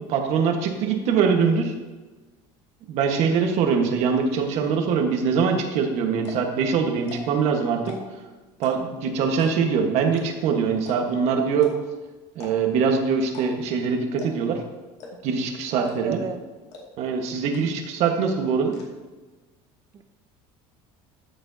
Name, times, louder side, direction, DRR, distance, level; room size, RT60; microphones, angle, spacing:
voice 1, 0.1-1.7 2.9-8.0 8.6-11.7 12.3-14.6 15.2-16.2 17.0-18.8, right 6 dB, 60° right, 3 dB, 1.4 m, -23 dB
sound 1, 5.7-5.8 6.1-6.5 7.0-7.4 7.7-8.2 8.6-9.0 9.4-9.7 10.1-10.2 10.5-10.6 10.8-11.2 11.6-11.7 12.3-12.8 13.3-13.7 14.2-14.5 15.0-15.4 15.9-16.2 16.7-16.8 17.1-17.2 17.5-18.0 18.2-18.8, left 4 dB, 55° left, 2.3 m, -42 dB
voice 2, 15.7-16.4 19.9-20.0, right 6 dB, 30° right, 9 dB, 0.6 m, -32 dB
12.5 x 7.2 x 2.8 m, 1.2 s
cardioid pair, 145°, 13 cm